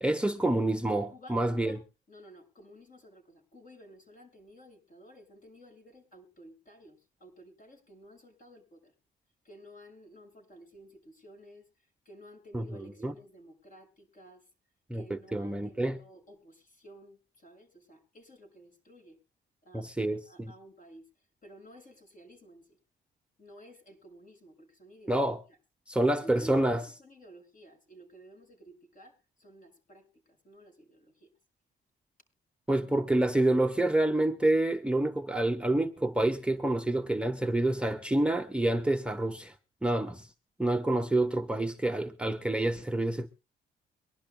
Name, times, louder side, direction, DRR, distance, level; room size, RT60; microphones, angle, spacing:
voice 1, 0.0-1.8 12.5-12.6 13.0-13.1 14.9-16.0 19.7-20.5 25.1-25.4 25.9-26.8 32.7-39.5 39.8-40.3 40.6-43.3, right 1 dB, 5° right, 0.8 m, -28 dB
voice 2, 1.1-8.9 9.4-14.5 14.9-19.2 19.6-22.8 23.4-25.6 26.1-26.7 27.0-31.3, equal, 45° left, 6.6 m, -53 dB
23.5 x 12.0 x 2.2 m
cardioid pair, 90°, 20 cm